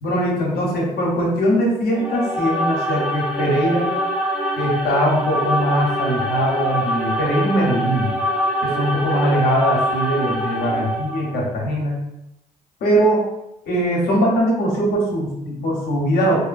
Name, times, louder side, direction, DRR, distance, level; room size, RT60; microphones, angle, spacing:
voice 1, 0.0-3.9 4.6-8.1 8.6-12.0 12.8-13.2 13.7-16.4, equal, 65° left, -2 dB, 0.8 m, -21 dB
sound 1, 1.9-11.4, equal, 5° right, 0.4 m, -24 dB
2.6 x 2.1 x 2.5 m, 0.86 s
cardioid pair, 110°, 17 cm